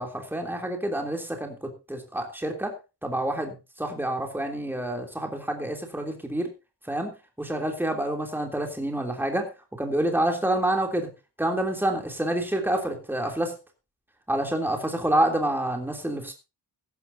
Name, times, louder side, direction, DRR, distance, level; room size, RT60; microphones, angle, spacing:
voice 1, 0.0-6.5 6.8-7.1 7.4-11.1 11.4-13.6 14.3-16.3, right 1 dB, 5° right, 3 dB, 3.2 m, -28 dB
16.0 x 14.0 x 2.8 m, 0.28 s
wide cardioid pair, 160°, 41 cm